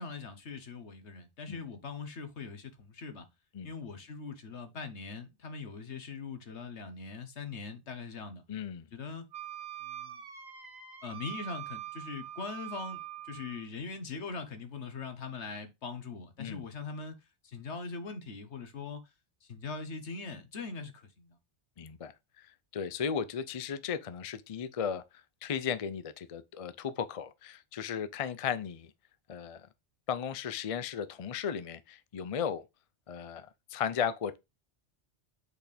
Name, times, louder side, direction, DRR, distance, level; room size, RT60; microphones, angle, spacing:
voice 1, 0.0-3.3 3.6-8.4 8.9-9.2 9.8-10.2 11.0-17.2 17.4-19.0 19.4-21.4, left 4 dB, 70° left, 1.5 m, -41 dB
voice 2, 8.5-8.9 16.4-16.6 21.8-25.0 25.4-28.9 29.3-29.7 30.1-32.6 33.1-34.4, left 7 dB, 45° left, 0.5 m, -35 dB
Wind instrument woodwind instrument, 9.3-13.7, right 12 dB, 35° right, 1.5 m, -44 dB
8.1 x 4.3 x 3.4 m
omnidirectional pair, 1.2 m